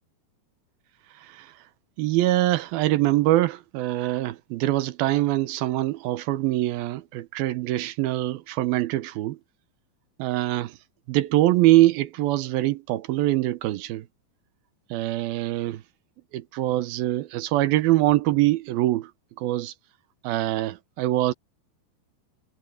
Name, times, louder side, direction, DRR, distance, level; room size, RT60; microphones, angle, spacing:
voice 1, 1.2-1.5 2.0-9.4 10.2-10.8 11.1-14.1 14.9-15.8 16.3-19.1 19.4-19.7 20.2-21.3, right 16 dB, 75° right, 2.6 m, -23 dB
omnidirectional pair, 4.5 m